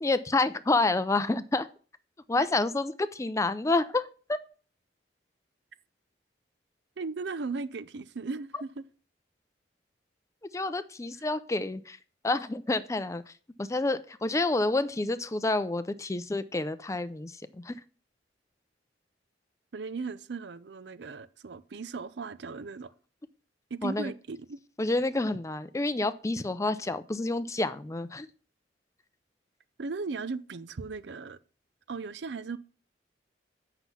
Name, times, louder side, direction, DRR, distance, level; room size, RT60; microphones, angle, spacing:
voice 1, 0.0-1.7 2.3-4.4 10.5-12.0 12.2-13.3 13.6-17.8 23.8-24.1 24.8-28.3, left 2 dB, 15° left, 0.4 m, -29 dB
voice 2, 7.0-8.8 19.7-22.9 23.7-24.6 29.8-31.4 31.9-32.6, right 4 dB, 70° right, 0.5 m, -37 dB
8.0 x 5.8 x 5.6 m
head